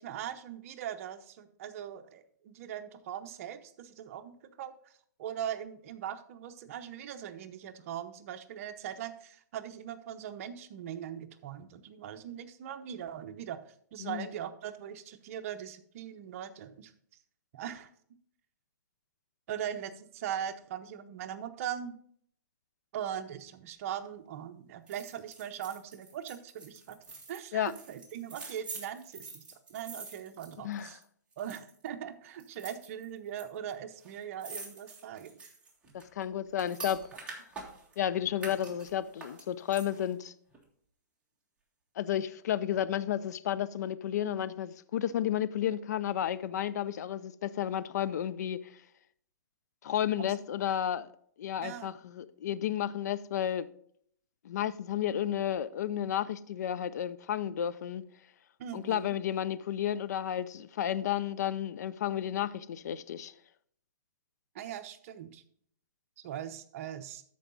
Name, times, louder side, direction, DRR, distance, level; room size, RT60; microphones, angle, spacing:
voice 1, 0.0-16.9 17.5-17.9 19.5-21.9 22.9-27.0 27.3-29.4 29.7-31.0 31.4-35.4 50.2-50.3 51.6-51.9 58.6-59.1 64.5-65.4 66.2-67.2, right 9 dB, 50° right, 0.8 m, -40 dB
sound 1, 24.9-31.0 31.3-31.9 32.4-33.4 33.7-33.8 34.0-38.0 38.4-40.1 40.5-40.6, right 4 dB, 10° right, 1.8 m, -46 dB
voice 2, 30.6-31.0 35.9-37.4 38.0-40.3 42.0-48.7 49.8-51.1 51.4-53.7 54.4-58.0 58.7-63.3, left 10 dB, 65° left, 0.5 m, -32 dB
13.0 x 4.7 x 4.0 m
hypercardioid pair, 145°, 10 cm